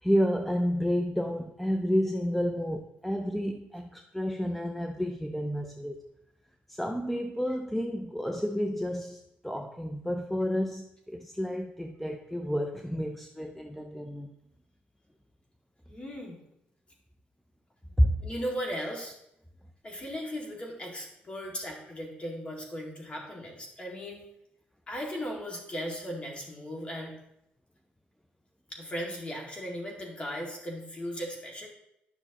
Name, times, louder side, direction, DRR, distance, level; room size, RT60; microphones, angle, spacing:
voice 1, 0.0-6.0 6.7-14.3 18.0-18.1, equal, 5° left, 4 dB, 0.5 m, -30 dB
voice 2, 15.9-16.4 18.2-19.2 19.8-24.2 24.9-27.1 28.7-31.7, equal, 30° left, -1 dB, 2.1 m, -37 dB
10.5 x 5.9 x 3.0 m, 0.81 s
cardioid pair, 100°, 4 cm